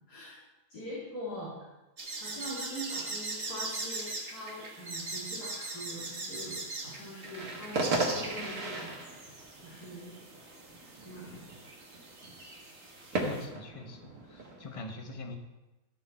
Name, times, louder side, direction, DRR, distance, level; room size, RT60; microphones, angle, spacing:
voice 1, 0.7-1.5 2.2-9.0 9.6-10.2 11.0-11.5, equal, 75° left, -8 dB, 3.2 m, -43 dB
sound 1, 2.0-13.4, right 3 dB, 45° right, 1.7 m, -41 dB
sound 2, 7.2-14.8, right 2 dB, 70° right, 2.1 m, -37 dB
voice 2, 13.1-15.4, left 2 dB, 25° left, 4 dB, 0.9 m, -43 dB
13.5 x 6.7 x 4.2 m, 1.0 s
omnidirectional pair, 1.7 m